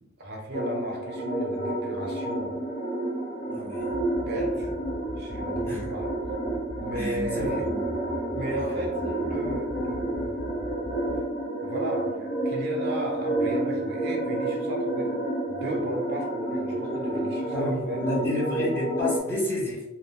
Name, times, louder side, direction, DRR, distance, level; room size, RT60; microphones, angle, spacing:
voice 1, 0.0-2.6 4.2-4.8 5.2-6.1 6.8-7.7 8.3-10.5 11.6-18.0, right 1 dB, 50° right, 0 dB, 0.7 m, -35 dB
sound 1, 0.5-19.2, right 1 dB, 75° left, 0.9 m, -30 dB
voice 2, 3.5-3.9 5.7-5.9 6.9-7.8 17.5-19.8, left 1 dB, 10° left, -5 dB, 0.7 m, -30 dB
sound 2, 3.9-11.2, left 1 dB, 40° left, 1.0 m, -40 dB
2.4 x 2.2 x 3.5 m, 1.0 s
head